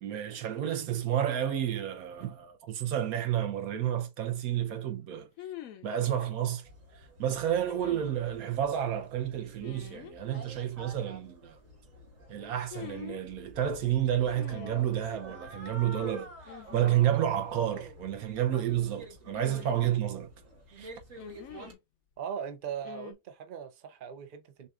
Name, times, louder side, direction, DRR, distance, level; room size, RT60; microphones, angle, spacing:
voice 1, 0.0-5.3 5.8-6.7 7.2-11.6 12.3-20.3 20.7-20.9, right 10 dB, 75° right, 1.1 m, -30 dB
sound 1, 3.4-3.5 5.4-5.9 7.7-8.1 9.6-10.2 12.7-13.2 14.4-15.0 16.5-17.1 17.4-17.5 19.3-20.3 21.2-21.8 22.8-23.1, left 10 dB, 75° left, 1.1 m, -45 dB
sound 2, 6.6-21.7, right 1 dB, 60° right, 1.8 m, -49 dB
voice 2, 22.2-24.7, right 8 dB, 45° right, 0.8 m, -39 dB
6.5 x 2.4 x 2.4 m
omnidirectional pair, 1.5 m